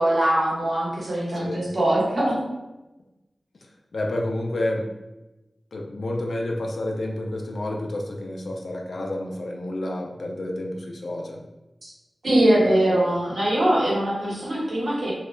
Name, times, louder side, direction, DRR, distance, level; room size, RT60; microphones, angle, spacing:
voice 1, 0.0-2.4 11.8-11.9 12.2-15.1, right 1 dB, 65° right, -6 dB, 1.0 m, -22 dB
voice 2, 3.9-4.9 5.7-11.4 12.6-13.1, left 1 dB, 80° left, 0 dB, 0.3 m, -30 dB
2.2 x 2.0 x 3.0 m, 1.0 s
wide cardioid pair, 60°, 0 cm